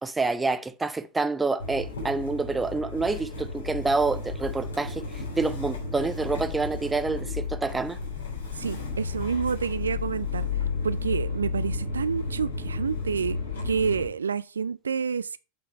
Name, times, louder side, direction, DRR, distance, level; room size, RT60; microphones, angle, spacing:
voice 1, 0.0-8.0, right 3 dB, 10° right, 0.7 m, -27 dB
Motor vehicle (road) / Engine starting, 1.6-14.1, left 4 dB, 65° left, 3.5 m, -33 dB
voice 2, 8.5-13.4 13.6-15.4, right 6 dB, 70° right, 0.3 m, -29 dB
8.0 x 5.0 x 4.5 m
figure-of-eight pair, 90°, 0 cm